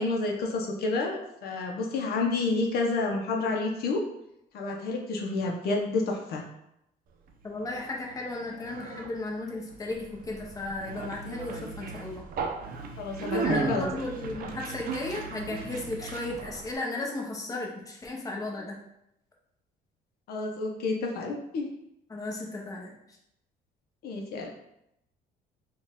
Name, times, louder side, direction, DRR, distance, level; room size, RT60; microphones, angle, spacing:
voice 1, 0.0-4.0 4.5-6.4 13.0-13.9 20.3-21.7 24.0-24.5, left 3 dB, 65° left, 1 dB, 0.7 m, -29 dB
Conversation, 7.3-16.7, right 5 dB, 60° right, 0.5 m, -36 dB
voice 2, 7.4-12.2 13.2-18.8 22.1-23.0, left 2 dB, 20° left, -1 dB, 0.8 m, -35 dB
4.2 x 2.3 x 3.5 m, 0.81 s
cardioid pair, 110°, 17 cm